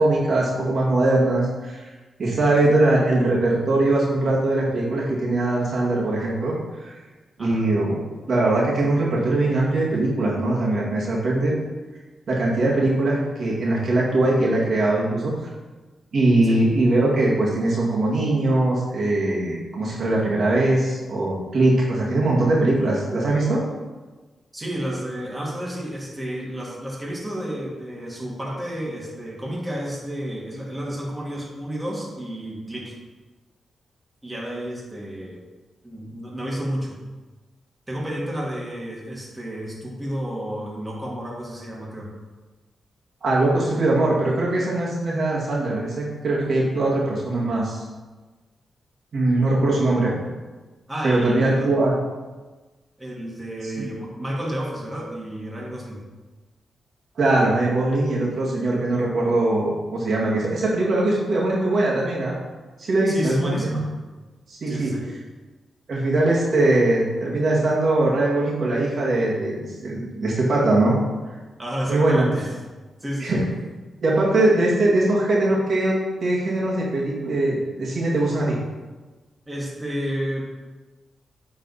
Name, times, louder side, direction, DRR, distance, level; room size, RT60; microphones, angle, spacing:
voice 1, 0.0-1.9 2.2-6.9 7.4-8.0 8.3-11.5 12.3-15.3 16.1-23.6 43.2-47.8 49.1-50.2 51.0-51.9 53.8-53.9 57.2-62.3 62.8-63.8 64.5-64.9 65.9-71.0 71.9-72.3 73.2-73.4 74.0-78.6, right 2 dB, 65° right, -5 dB, 2.0 m, -21 dB
voice 2, 24.5-33.0 34.2-35.4 35.8-37.0 37.9-42.1 50.9-51.7 53.0-56.0 63.1-63.9 64.7-65.1 71.6-72.5 73.0-73.5 79.5-80.4, equal, 15° right, -4 dB, 2.2 m, -31 dB
9.1 x 4.1 x 4.2 m, 1.2 s
cardioid pair, 75°, 0 cm